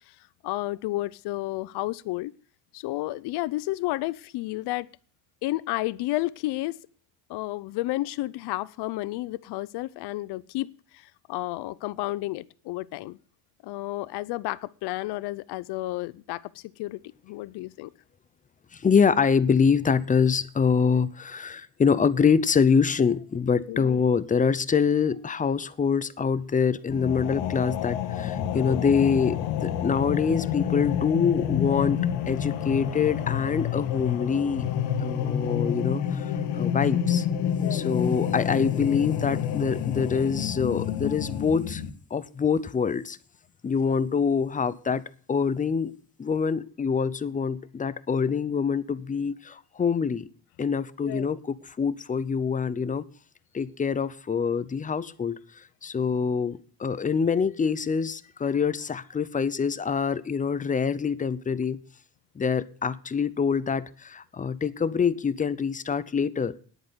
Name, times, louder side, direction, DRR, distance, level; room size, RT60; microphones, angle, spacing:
voice 1, 0.4-2.3 2.7-4.9 5.4-6.8 7.3-10.7 10.9-13.2 13.6-17.9 23.7-24.0 28.5-28.8 37.6-37.9 51.0-51.3, left 18 dB, 70° left, 0.6 m, -31 dB
voice 2, 18.7-32.0 32.3-34.7 35.0-37.3 37.7-41.8 42.1-43.2 43.6-45.0 45.3-50.3 50.6-53.0 53.5-61.8 62.4-66.5, left 6 dB, 20° left, 0.6 m, -25 dB
sound 1, 26.9-41.9, left 9 dB, 85° left, 1.6 m, -28 dB
10.0 x 8.9 x 8.0 m
cardioid pair, 135°, 42 cm